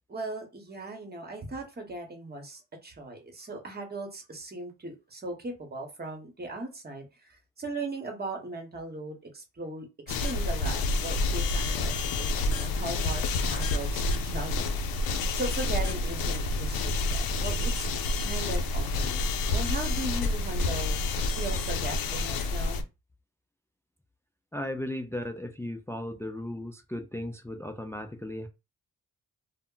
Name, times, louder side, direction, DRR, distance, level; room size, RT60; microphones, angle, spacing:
voice 1, 0.1-14.7 15.3-17.9 18.2-21.0 21.4-22.8, right 2 dB, 25° right, 1.0 m, -38 dB
sound 1, 10.1-22.8, left 2 dB, 80° left, 0.5 m, -28 dB
voice 2, 24.5-28.5, left 1 dB, 10° left, 0.3 m, -36 dB
2.1 x 2.1 x 3.7 m
cardioid pair, 75°, 35 cm